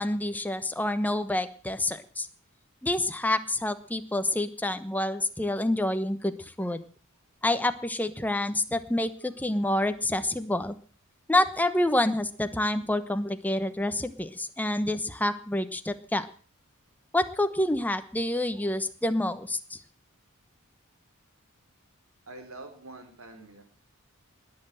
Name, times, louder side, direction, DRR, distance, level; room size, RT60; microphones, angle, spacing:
voice 1, 0.0-2.3 2.8-6.8 7.4-10.8 11.3-16.3 17.1-19.8, left 1 dB, 10° left, 9 dB, 1.0 m, -28 dB
voice 2, 22.3-23.6, right 2 dB, 70° right, 6 dB, 4.2 m, -45 dB
20.0 x 7.9 x 7.7 m, 0.43 s
head